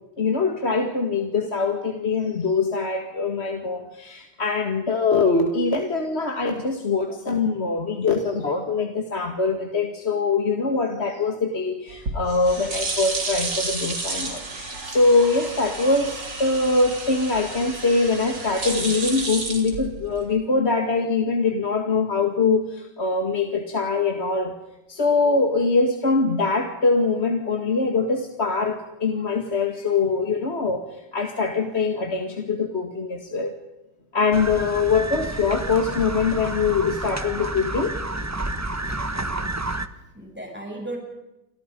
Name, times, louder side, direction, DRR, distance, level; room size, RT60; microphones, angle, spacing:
voice 1, 0.2-24.5 24.9-33.5 34.1-37.9, left 4 dB, 30° left, 4 dB, 1.9 m, -23 dB
sound 1, 11.9-20.3, right 3 dB, 55° right, 4.6 m, -31 dB
sound 2, 34.3-39.9, right 2 dB, 20° right, 0.4 m, -30 dB
voice 2, 39.2-39.7 40.1-41.0, right 1 dB, 5° right, 0 dB, 8.0 m, -36 dB
30.0 x 26.0 x 5.3 m, 0.96 s
omnidirectional pair, 2.4 m